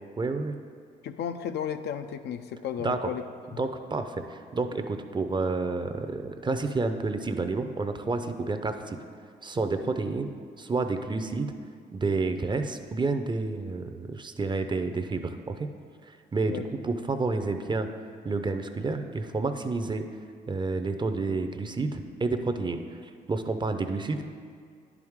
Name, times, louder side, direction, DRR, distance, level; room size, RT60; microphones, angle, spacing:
voice 1, 0.2-0.5 2.8-3.1 3.6-9.0 9.4-10.3 10.6-11.5 11.9-15.7 16.1-17.9 18.2-20.1 20.5-22.8 23.3-24.3, right 3 dB, 25° right, 7 dB, 0.6 m, -29 dB
voice 2, 1.0-3.2 3.5-3.6 16.5-16.6, left 9 dB, 60° left, 8 dB, 0.4 m, -34 dB
10.5 x 4.8 x 3.6 m, 2.1 s
supercardioid pair, 65°, 19 cm